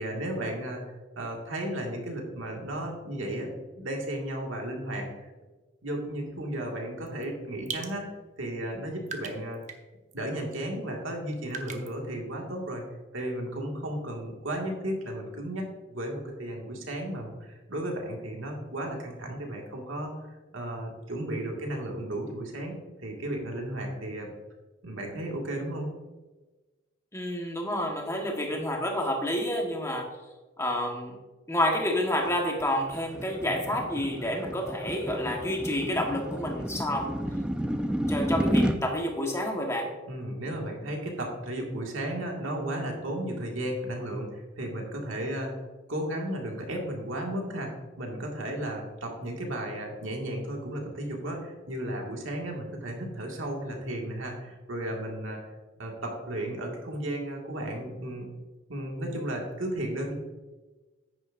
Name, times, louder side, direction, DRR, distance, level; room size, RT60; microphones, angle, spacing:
voice 1, 0.0-5.3 5.8-9.6 10.1-12.8 13.1-20.1 20.5-22.7 23.0-24.3 24.8-25.9 40.1-45.5 45.9-55.4 55.8-58.3 58.7-60.1, right 1 dB, 80° right, 0 dB, 2.0 m, -34 dB
sound 1, 7.1-7.2 7.7-7.9 8.6-8.8 9.1-9.8 10.1-10.2 11.5-11.9, right 4 dB, 35° right, 0.9 m, -38 dB
voice 2, 27.1-30.1 30.6-31.1 31.5-37.2 38.1-39.9, left 1 dB, 15° left, 1 dB, 1.3 m, -29 dB
sound 2, 32.3-38.8, equal, 5° right, 0.4 m, -31 dB
10.0 x 9.4 x 2.6 m, 1.2 s
head